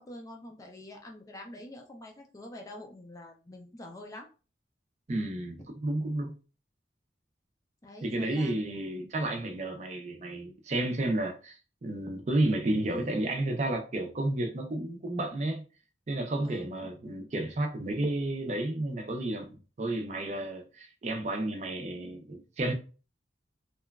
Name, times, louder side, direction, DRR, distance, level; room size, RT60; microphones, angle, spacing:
voice 1, 0.0-4.3 7.8-9.0 12.9-13.2 16.4-16.7, left 1 dB, 20° left, 0.4 m, -46 dB
voice 2, 5.1-6.4 8.0-15.6 16.1-22.7, right 1 dB, 40° right, 0.5 m, -31 dB
2.9 x 2.2 x 2.3 m
head